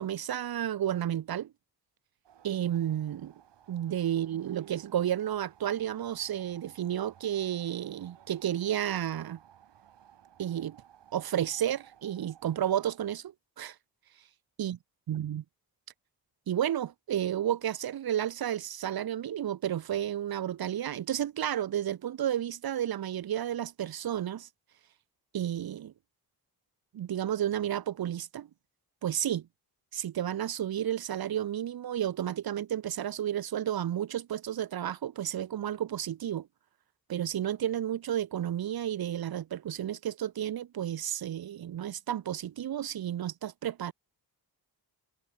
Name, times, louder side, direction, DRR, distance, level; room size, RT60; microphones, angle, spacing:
voice 1, 0.0-1.5 2.4-3.3 3.7-9.4 10.4-10.8 11.1-13.7 14.6-14.8 15.1-15.4 16.5-24.5 25.3-25.9 26.9-28.5 29.0-29.5 29.9-36.5 37.1-43.9, right 10 dB, 60° right, 0.8 m, -32 dB
sound 1, 2.2-13.0, right 10 dB, 90° right, 3.8 m, -59 dB
cardioid pair, 70°, 41 cm